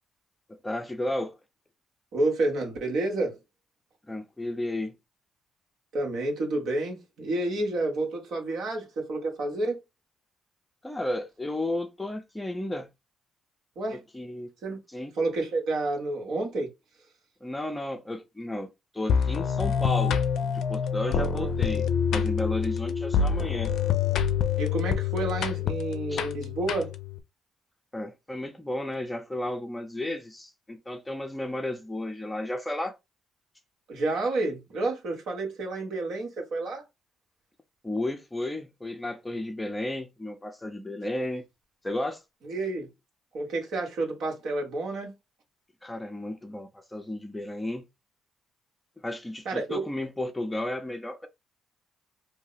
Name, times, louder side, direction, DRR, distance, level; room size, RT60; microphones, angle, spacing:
voice 1, 0.5-1.4 4.1-4.9 10.8-12.9 14.1-14.5 14.9-15.1 17.4-18.7 18.9-23.7 26.1-26.2 27.9-33.0 37.8-41.4 41.8-42.2 45.8-47.9 49.0-51.3, left 1 dB, 10° left, 0.6 m, -33 dB
voice 2, 2.1-3.4 5.9-9.8 13.7-14.0 14.6-14.8 15.2-16.7 21.0-21.5 24.6-26.9 33.9-36.8 42.4-42.9 43.3-45.1 49.4-49.8, right 2 dB, 75° right, 1.3 m, -29 dB
sound 1, 19.1-27.2, left 7 dB, 70° left, 0.4 m, -26 dB
2.7 x 2.0 x 4.0 m
cardioid pair, 90°, 0 cm